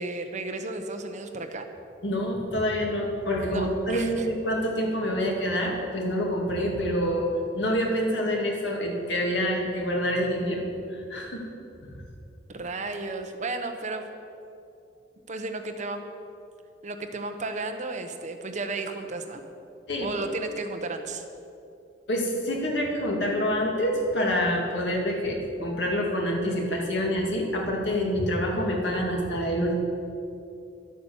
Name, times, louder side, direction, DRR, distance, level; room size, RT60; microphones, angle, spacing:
voice 1, 0.0-1.7 3.5-4.3 12.5-14.1 15.3-16.0 16.8-19.4 20.0-21.2, right 3 dB, 40° right, 6 dB, 1.0 m, -33 dB
voice 2, 2.0-7.3 7.5-11.4 19.9-20.1 22.1-29.7, equal, 70° left, -1 dB, 2.5 m, -27 dB
12.0 x 8.7 x 7.1 m, 2.6 s
head